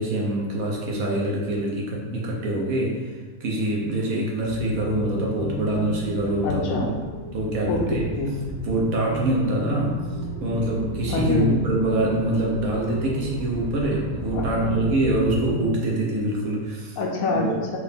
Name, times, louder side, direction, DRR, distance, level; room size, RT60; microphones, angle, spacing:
voice 1, 0.0-6.9 7.3-8.0 8.6-10.0 10.4-17.0 17.3-17.5, right 1 dB, 65° right, -2 dB, 1.2 m, -25 dB
sound 1, 4.4-15.7, equal, 90° right, 1.6 m, -33 dB
voice 2, 6.4-6.9 7.7-7.8 8.2-8.5 11.1-11.6 14.3-14.7 17.0-17.8, left 3 dB, 70° left, 0 dB, 1.0 m, -26 dB
4.7 x 2.6 x 3.4 m, 1.3 s
omnidirectional pair, 1.7 m